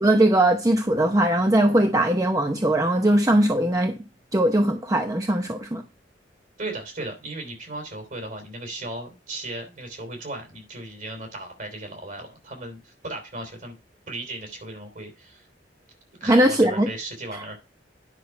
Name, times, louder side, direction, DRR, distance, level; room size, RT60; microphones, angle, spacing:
voice 1, 0.0-4.0 4.3-5.8 16.2-16.9 17.3-17.5, right 1 dB, 20° right, 0.7 m, -20 dB
voice 2, 6.6-13.7 14.1-15.5 16.2-17.6, right 2 dB, 45° right, 3.3 m, -36 dB
9.9 x 5.9 x 4.6 m
head